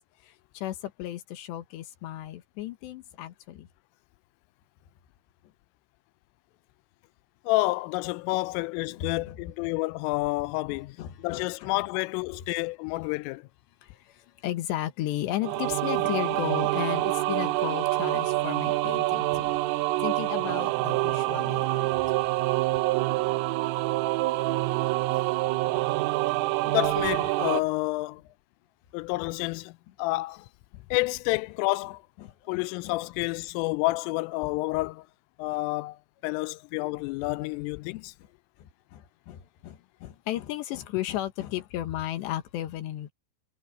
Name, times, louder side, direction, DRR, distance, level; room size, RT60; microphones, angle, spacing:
voice 1, 0.5-3.7 8.9-9.4 10.7-11.7 13.8-19.5 20.0-21.9 32.2-32.6 38.6-43.1, left 13 dB, 70° left, 3.3 m, -34 dB
voice 2, 7.5-13.5 26.6-28.2 28.9-29.7 30.0-30.5 30.9-32.0 32.5-35.1 35.4-38.1, left 21 dB, 90° left, 3.2 m, -29 dB
sound 1, 15.4-27.6, right 18 dB, 85° right, 3.5 m, -26 dB
omnidirectional pair, 5.7 m